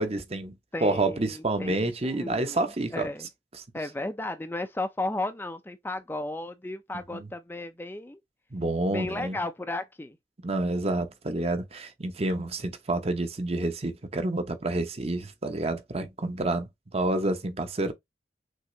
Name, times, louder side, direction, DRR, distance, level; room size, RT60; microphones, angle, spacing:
voice 1, 0.0-0.5 0.8-3.1 7.1-7.3 8.5-9.4 10.4-17.9, right 2 dB, 35° right, 0.8 m, -29 dB
voice 2, 0.7-2.6 2.9-3.3 3.7-8.2 8.9-10.2, left 2 dB, 10° left, 0.4 m, -34 dB
6.3 x 3.0 x 2.7 m
head